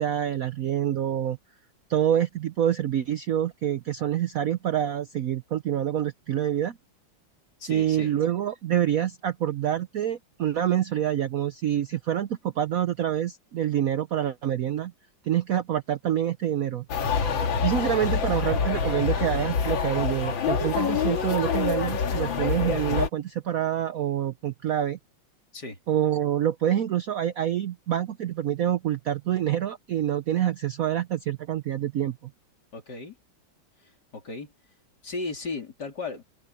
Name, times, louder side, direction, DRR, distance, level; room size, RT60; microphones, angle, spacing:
voice 1, 0.0-1.4 1.9-6.8 7.7-14.9 15.2-16.8 17.6-25.0 25.9-32.3, right 10 dB, 65° right, 0.9 m, -26 dB
voice 2, 7.6-8.1 25.5-25.8 32.7-33.2 33.8-34.5 35.0-36.2, left 3 dB, 55° left, 4.0 m, -36 dB
sound 1, 16.9-23.1, left 6 dB, 75° left, 2.4 m, -26 dB
open air
omnidirectional pair, 2.1 m